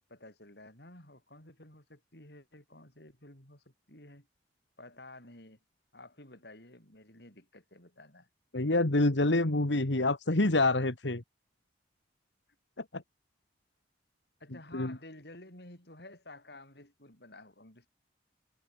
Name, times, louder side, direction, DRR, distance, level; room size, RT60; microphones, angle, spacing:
voice 1, 0.0-4.3 4.8-5.6 5.9-8.3 14.4-17.9, left 2 dB, 60° left, 7.7 m, -52 dB
voice 2, 8.5-11.2 12.8-13.0 14.7-15.0, left 2 dB, 80° left, 1.9 m, -27 dB
head